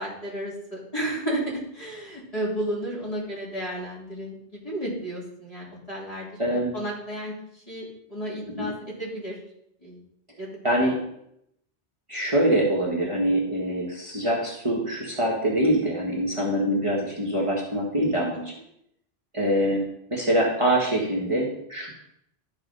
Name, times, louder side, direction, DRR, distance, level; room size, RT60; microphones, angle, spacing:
voice 1, 0.0-6.3 6.7-7.3 7.7-7.8 8.1-8.7 9.0-9.4 9.8-10.0 10.4-10.5 18.3-18.4, right 1 dB, 35° left, -7 dB, 3.2 m, -32 dB
voice 2, 6.4-6.7 8.6-8.7 10.6-11.0 12.1-18.5 19.3-19.8 20.1-21.9, right 1 dB, 30° right, -4 dB, 1.5 m, -24 dB
12.0 x 4.2 x 5.3 m, 0.78 s
omnidirectional pair, 1.1 m